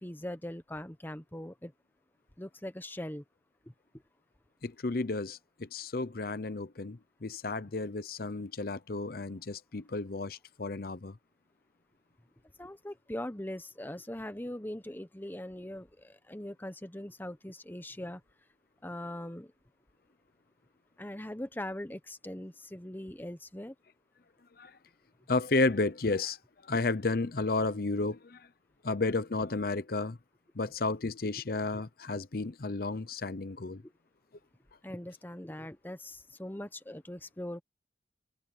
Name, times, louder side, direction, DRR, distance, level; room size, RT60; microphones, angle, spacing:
voice 1, 0.0-1.7 2.4-3.2 12.6-18.2 18.8-19.5 21.0-23.7 33.8-33.9 34.8-37.6, left 1 dB, 10° left, 0.9 m, -41 dB
voice 2, 4.6-11.2 24.6-24.8 25.3-26.4 26.6-28.5 28.8-30.2 30.5-33.8, left 3 dB, 55° left, 0.8 m, -32 dB
open air
head